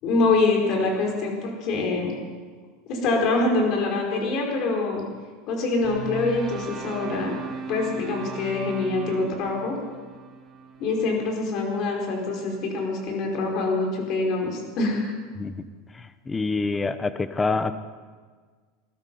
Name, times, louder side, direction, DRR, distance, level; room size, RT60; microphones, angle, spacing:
voice 1, 0.0-2.1 2.9-5.0 5.5-7.3 7.7-9.7 10.8-15.1, left 3 dB, 50° left, 1 dB, 4.9 m, -25 dB
sound 1, 5.8-12.1, right 6 dB, 20° right, 3.1 m, -38 dB
voice 2, 15.9-17.7, left 3 dB, 15° left, 12 dB, 0.8 m, -26 dB
19.5 x 12.5 x 5.6 m, 1.5 s
supercardioid pair, 120°, 0 cm